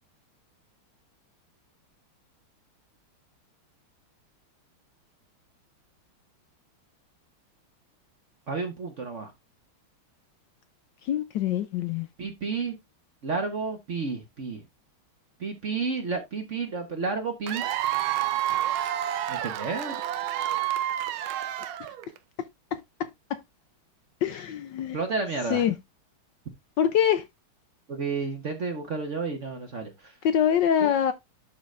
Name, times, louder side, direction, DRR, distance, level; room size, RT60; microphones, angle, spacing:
voice 1, 8.5-9.3 12.2-12.8 13.2-14.6 15.4-17.6 19.3-20.0 24.9-25.6 27.9-30.1, right 4 dB, 45° right, 1.1 m, -31 dB
voice 2, 11.0-12.1 18.5-18.7 22.7-23.4 24.2-25.0 25.5-25.7 26.8-27.2 30.2-31.1, left 9 dB, 70° left, 1.2 m, -25 dB
Cheering / Applause / Crowd, 17.5-22.2, right 12 dB, 75° right, 1.4 m, -29 dB
11.5 x 3.9 x 3.2 m
omnidirectional pair, 2.3 m